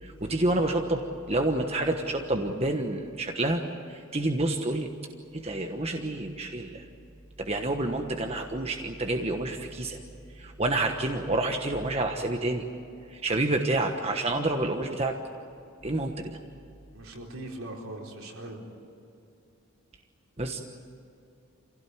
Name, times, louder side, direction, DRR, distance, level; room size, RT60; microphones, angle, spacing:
voice 1, 0.0-3.6 3.9-4.9 5.3-6.8 7.4-10.0 10.3-12.7 13.1-15.2 15.8-16.4 20.4-20.6, right 2 dB, 30° right, 4 dB, 1.2 m, -28 dB
voice 2, 16.9-18.6, right 1 dB, 75° right, 0 dB, 4.3 m, -41 dB
27.0 x 17.0 x 9.6 m, 2.7 s
head